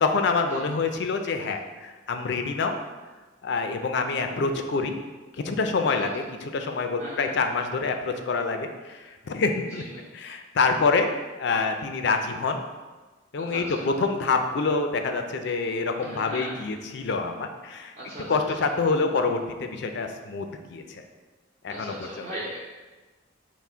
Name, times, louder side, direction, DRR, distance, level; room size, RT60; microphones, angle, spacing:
voice 1, 0.0-2.8 3.4-5.0 5.4-9.8 10.1-11.1 11.4-12.6 13.3-17.9 18.3-21.0 21.6-22.3, left 4 dB, 60° left, 6 dB, 0.4 m, -26 dB
voice 2, 7.0-7.3 9.7-10.0 13.4-13.8 16.0-16.6 17.9-18.3 21.7-22.6, right 1 dB, 30° right, -8 dB, 0.7 m, -38 dB
5.8 x 2.1 x 4.3 m, 1.3 s
head